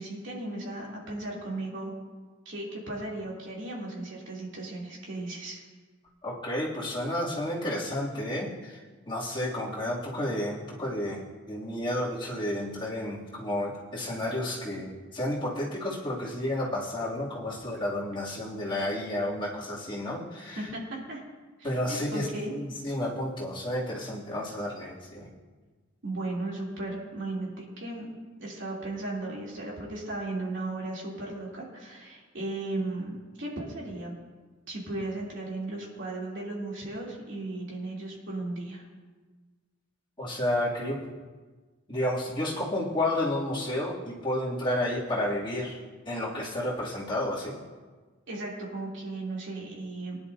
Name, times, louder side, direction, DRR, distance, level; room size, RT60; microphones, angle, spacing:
voice 1, 0.0-1.9 2.4-5.6 20.6-21.2 21.6-22.6 26.0-28.0 28.4-34.1 34.7-38.8 48.3-50.2, right 2 dB, 65° right, -4 dB, 3.1 m, -36 dB
voice 2, 6.2-20.7 21.6-25.3 40.2-41.0 41.9-45.8 46.0-47.6, left 1 dB, 25° left, -7 dB, 2.7 m, -31 dB
19.5 x 10.5 x 2.8 m, 1.4 s
head